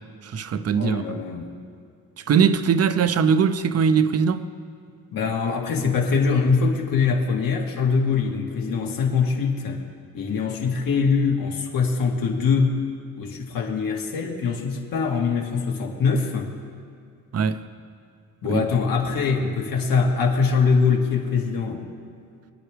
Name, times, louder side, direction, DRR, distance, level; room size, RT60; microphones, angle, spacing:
voice 1, 0.2-1.2 2.3-4.5 17.3-17.6 18.4-18.6, right 6 dB, 45° right, 0.6 m, -21 dB
voice 2, 0.7-1.5 5.1-9.8 10.1-12.7 13.2-16.5 18.4-21.8, left 5 dB, 70° left, 1.9 m, -23 dB
24.5 x 9.9 x 3.4 m
cardioid pair, 125°, 36 cm